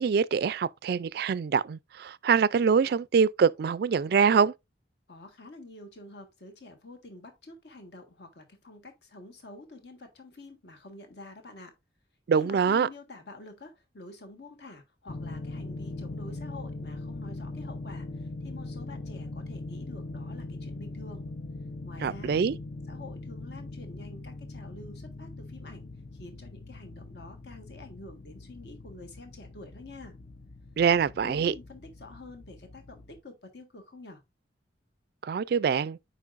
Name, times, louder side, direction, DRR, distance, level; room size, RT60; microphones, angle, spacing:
voice 1, 0.0-4.5 12.3-12.9 22.0-22.6 30.8-31.5 35.2-36.0, right 6 dB, 55° right, 0.3 m, -24 dB
voice 2, 5.1-11.7 12.3-21.2 21.8-22.6 22.9-25.9 26.1-30.1 31.2-34.2, left 2 dB, 60° left, 1.5 m, -48 dB
sound 1, 15.1-33.2, left 2 dB, 45° left, 0.5 m, -41 dB
8.3 x 5.3 x 2.5 m
head